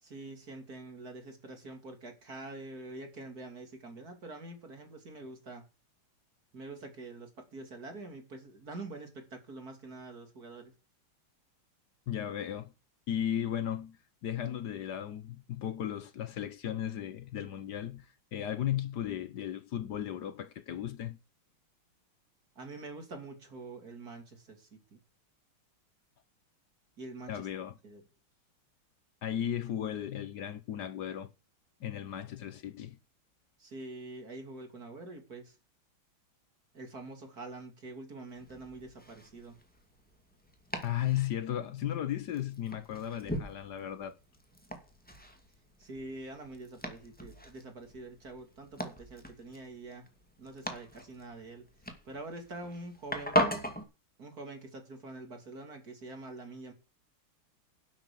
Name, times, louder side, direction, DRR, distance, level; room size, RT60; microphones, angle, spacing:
voice 1, 0.0-5.6 6.5-10.7 22.6-25.0 27.0-27.5 27.8-28.0 33.6-35.6 36.7-39.6 45.8-50.1 50.4-51.6 52.0-53.4 54.2-56.7, right 2 dB, 45° right, 3.2 m, -45 dB
voice 2, 12.1-12.7 13.1-21.2 27.3-27.7 29.2-31.3 31.8-33.0 40.8-44.1, left 10 dB, 60° left, 1.3 m, -35 dB
Domestic sounds home sounds, 38.3-53.8, equal, 5° left, 2.2 m, -39 dB
11.5 x 7.2 x 6.9 m
omnidirectional pair, 2.3 m